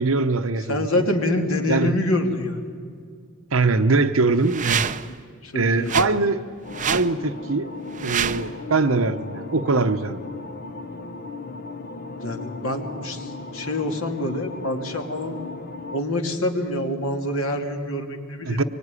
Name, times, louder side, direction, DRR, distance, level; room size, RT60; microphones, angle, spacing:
voice 1, 0.0-1.0 1.7-2.0 3.5-4.9 5.5-6.4 6.8-7.7 8.0-10.2 18.4-18.6, right 3 dB, 70° right, 8 dB, 0.9 m, -22 dB
voice 2, 0.7-2.6 5.4-6.3 12.2-15.4 15.9-18.6, left 1 dB, 80° left, 4 dB, 2.8 m, -26 dB
Swooshes Swishes and Whooshes, 4.4-5.2 5.8-6.1 6.7-7.1 7.9-8.5, right 8 dB, 40° right, 0.7 m, -26 dB
sound 1, 6.6-16.0, left 3 dB, 50° left, 0.9 m, -36 dB
25.0 x 23.5 x 9.9 m, 2.2 s
head